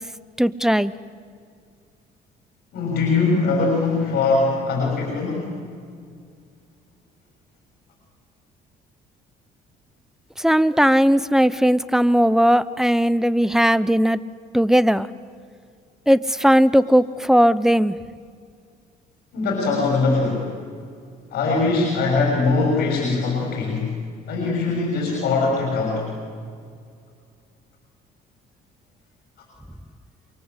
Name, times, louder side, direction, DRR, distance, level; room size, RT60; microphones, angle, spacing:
voice 1, 0.4-0.9 10.4-14.2 14.5-15.1 16.1-18.0, equal, 5° right, 16 dB, 0.7 m, -17 dB
voice 2, 2.7-5.5 19.3-20.5 21.3-24.0 24.3-26.1, left 3 dB, 70° left, -1 dB, 6.5 m, -21 dB
29.0 x 23.5 x 8.2 m, 2.2 s
cardioid pair, 110°, 17 cm